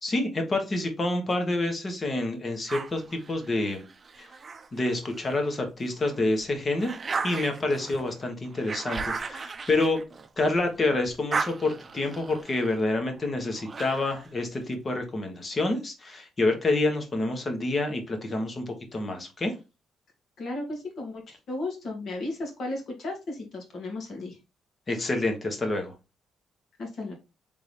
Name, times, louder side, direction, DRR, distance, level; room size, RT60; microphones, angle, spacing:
voice 1, 0.0-3.8 4.2-4.3 4.7-7.0 7.2-10.0 10.4-19.5 24.9-25.9, left 2 dB, 35° left, 4 dB, 1.3 m, -28 dB
sound 1, 2.7-5.4 5.9-10.7 11.0-14.3, right 4 dB, 35° right, 0.5 m, -36 dB
voice 2, 20.4-24.4 26.8-27.1, left 2 dB, 60° left, 1 dB, 1.9 m, -35 dB
3.8 x 3.6 x 3.3 m, 0.27 s
cardioid pair, 90°, 0 cm